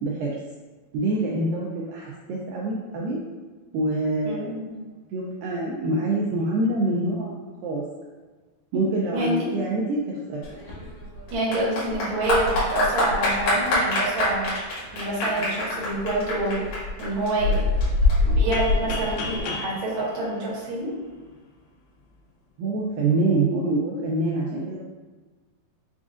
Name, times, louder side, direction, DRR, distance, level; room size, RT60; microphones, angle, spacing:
voice 1, 0.9-3.2 3.7-4.7 5.1-7.3 7.6-7.8 8.7-10.0 10.3-10.5 22.6-24.8, right 2 dB, 85° right, -3 dB, 2.1 m, -25 dB
voice 2, 4.2-4.7 9.1-9.5 11.3-14.5 14.9-16.6 17.0-17.6 18.2-20.9, right 1 dB, 60° right, -7 dB, 1.3 m, -27 dB
Clapping / Applause, 10.4-19.4, left 2 dB, 65° left, 2.7 m, -24 dB
sound 1, 18.5-21.3, left 3 dB, 80° left, 2.3 m, -35 dB
7.0 x 2.5 x 2.5 m, 1.3 s
omnidirectional pair, 4.4 m